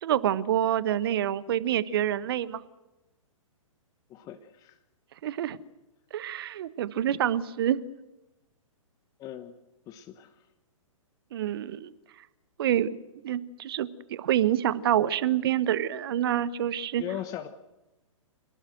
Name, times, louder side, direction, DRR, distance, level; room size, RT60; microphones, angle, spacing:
voice 1, 0.0-2.6 5.2-5.6 6.1-7.8 11.3-11.9 12.6-13.0 13.2-17.0, right 11 dB, 45° right, 17 dB, 1.3 m, -27 dB
voice 2, 4.1-4.8 9.2-9.6 9.9-10.4 17.0-17.5, left 11 dB, 20° left, 7 dB, 1.3 m, -39 dB
27.0 x 19.0 x 7.9 m, 1.0 s
figure-of-eight pair, 120°, 17 cm